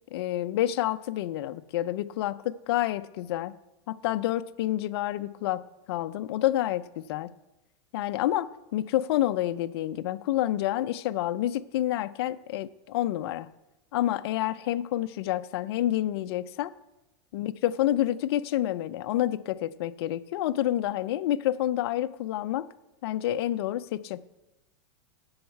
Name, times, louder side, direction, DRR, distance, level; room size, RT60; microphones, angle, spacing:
voice 1, 0.1-3.5 3.9-5.6 5.9-7.3 7.9-13.5 13.9-16.7 17.3-22.7 23.0-24.2, left 13 dB, 60° left, 11 dB, 0.4 m, -28 dB
7.8 x 7.2 x 8.2 m, 0.98 s
supercardioid pair, 160°, 15 cm